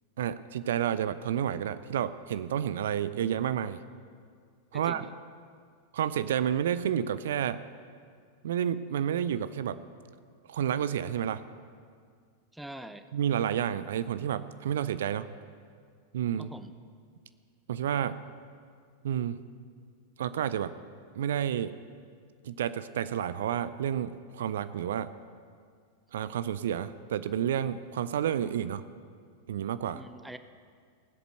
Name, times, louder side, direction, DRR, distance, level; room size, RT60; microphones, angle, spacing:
voice 1, 0.2-3.8 4.7-5.0 5.9-7.6 8.4-9.8 10.5-11.4 13.1-15.3 16.1-16.5 17.7-18.2 19.0-19.4 20.2-20.7 21.2-21.8 22.4-25.1 26.1-28.8 29.5-30.0, right 9 dB, 60° right, 14 dB, 0.4 m, -30 dB
voice 2, 4.7-5.1 12.5-13.1 16.4-16.7 29.9-30.4, right 1 dB, 5° right, 11 dB, 0.6 m, -44 dB
19.0 x 8.0 x 6.5 m, 2.1 s
figure-of-eight pair, 90°, 0 cm